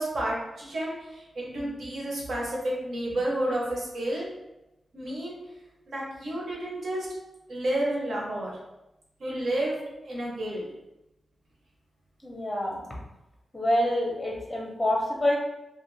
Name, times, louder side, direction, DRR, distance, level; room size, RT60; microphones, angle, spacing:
voice 1, 0.0-4.3 4.9-5.4 5.9-7.1 7.5-8.5 9.2-9.8 10.0-10.7, right 1 dB, 70° right, -4 dB, 0.9 m, -30 dB
voice 2, 12.2-12.8 13.5-15.4, left 1 dB, 15° left, -2 dB, 0.6 m, -26 dB
2.5 x 2.4 x 3.2 m, 0.93 s
wide cardioid pair, 125°, 0 cm